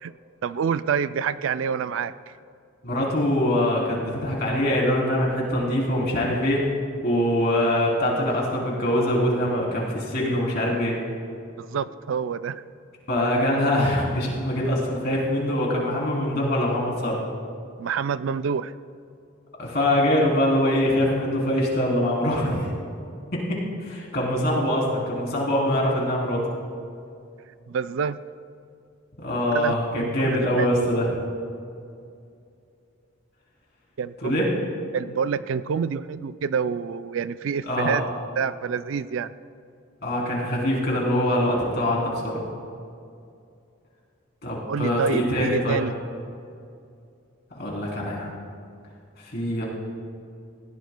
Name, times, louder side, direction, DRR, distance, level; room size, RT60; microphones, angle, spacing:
voice 1, 0.4-2.3 11.6-12.6 17.8-18.7 27.7-28.2 29.5-30.7 34.0-34.5 34.9-38.0 38.4-39.3 44.7-45.9, right 6 dB, 70° right, 14 dB, 0.4 m, -27 dB
voice 2, 2.8-6.7 7.0-11.0 13.1-17.2 19.6-22.7 23.3-26.5 29.2-31.2 34.2-34.5 37.7-38.0 40.0-42.4 44.4-45.8 47.5-48.3 49.2-49.7, left 1 dB, 50° left, -3 dB, 3.2 m, -23 dB
19.5 x 17.0 x 2.2 m, 2.5 s
head